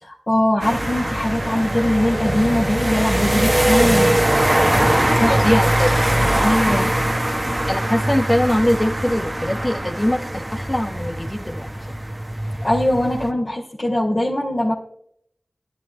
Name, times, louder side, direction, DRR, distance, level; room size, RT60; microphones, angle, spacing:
voice 1, 0.0-4.2 5.2-5.6 6.4-6.9 12.6-14.7, left 1 dB, 50° left, -5 dB, 2.4 m, -21 dB
sound 1, 0.6-13.3, right 1 dB, 25° right, 1.1 m, -21 dB
voice 2, 5.3-6.1 7.7-11.7, left 1 dB, 20° left, 5 dB, 1.1 m, -22 dB
19.0 x 11.0 x 2.2 m, 0.68 s
cardioid pair, 45°, 0 cm